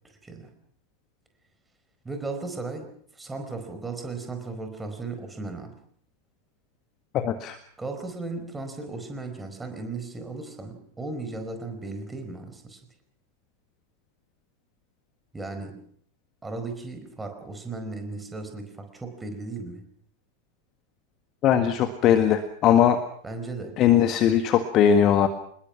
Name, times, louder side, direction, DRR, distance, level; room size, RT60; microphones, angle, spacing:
voice 1, 0.2-0.5 2.0-5.8 7.8-12.8 15.3-15.8 16.4-19.8 23.2-23.8, right 3 dB, 10° right, 6 dB, 4.7 m, -36 dB
voice 2, 7.1-7.6 21.4-23.0 23.8-25.3, left 9 dB, 35° left, 9 dB, 1.7 m, -20 dB
27.0 x 21.0 x 5.9 m, 0.64 s
figure-of-eight pair, 90°, 0 cm